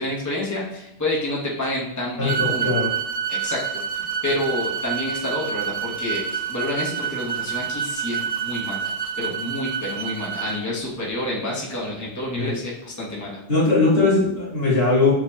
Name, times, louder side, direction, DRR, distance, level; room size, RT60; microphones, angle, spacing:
voice 1, 0.0-2.7 3.3-13.4, left 1 dB, 20° left, -4 dB, 1.0 m, -29 dB
voice 2, 2.2-2.9 12.4-12.5 13.5-15.1, left 3 dB, 70° left, -6 dB, 1.9 m, -19 dB
sound 1, 2.3-10.6, right 8 dB, 65° right, 0.7 m, -28 dB
7.0 x 2.9 x 2.2 m, 0.86 s
omnidirectional pair, 1.0 m